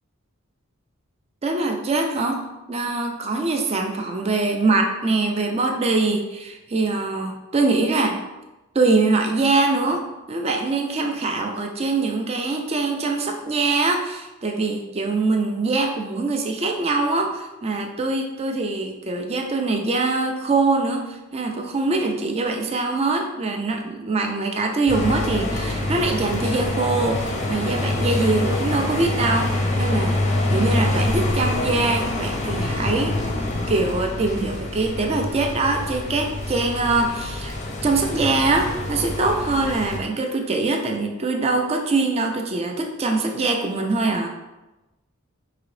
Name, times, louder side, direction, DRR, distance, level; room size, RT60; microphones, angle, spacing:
voice 1, 1.4-8.2 8.7-30.2 30.5-33.2 33.7-37.6 37.8-44.3, right 3 dB, 30° right, 3 dB, 0.4 m, -23 dB
sound 1, 24.9-40.0, left 1 dB, 35° left, 0.6 m, -26 dB
4.9 x 2.9 x 3.1 m, 1.0 s
head